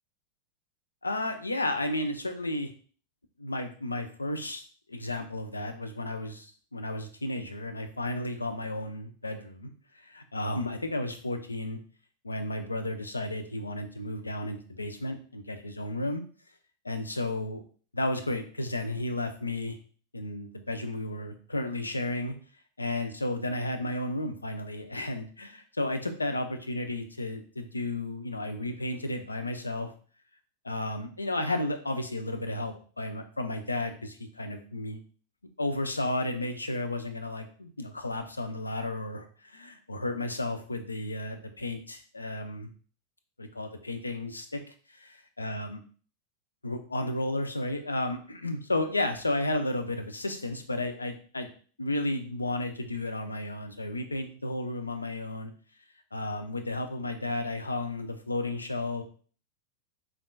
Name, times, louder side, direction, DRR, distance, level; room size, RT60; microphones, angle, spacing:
voice 1, 1.0-2.7 3.4-4.6 4.9-9.7 10.0-11.8 12.2-16.2 16.8-17.6 17.9-19.8 20.1-22.3 22.8-29.9 30.6-35.0 35.6-42.7 43.4-45.8 46.6-51.5 51.8-55.5 56.1-59.0, left 2 dB, 80° left, 6 dB, 0.4 m, -33 dB
3.5 x 2.3 x 2.2 m, 0.42 s
figure-of-eight pair, 90°, 0 cm